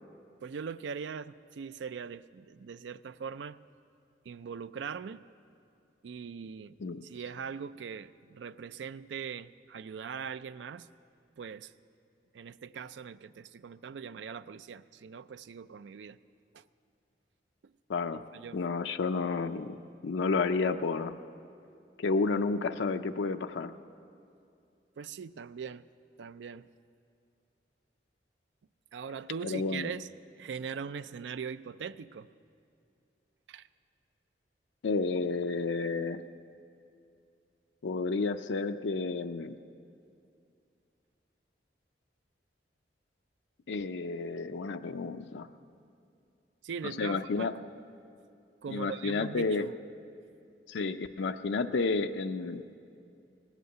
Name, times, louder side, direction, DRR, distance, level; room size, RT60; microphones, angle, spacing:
voice 1, 0.4-3.6 4.3-5.2 6.0-10.9 11.4-11.7 12.3-16.2 16.5-16.6 17.6-17.7 18.1-18.6 25.0-25.8 26.2-26.7 28.9-30.1 30.4-32.3 33.5-33.7 46.6-47.5 48.6-49.7, right 6 dB, 80° right, 15 dB, 0.4 m, -41 dB
voice 2, 17.9-18.2 18.5-19.8 20.0-21.1 22.0-23.7 29.4-29.9 34.8-36.2 37.8-39.6 43.7-45.5 47.0-47.5 48.7-49.7 50.7-52.6, left 4 dB, 85° left, 8 dB, 0.5 m, -31 dB
18.0 x 8.2 x 7.8 m, 2.5 s
head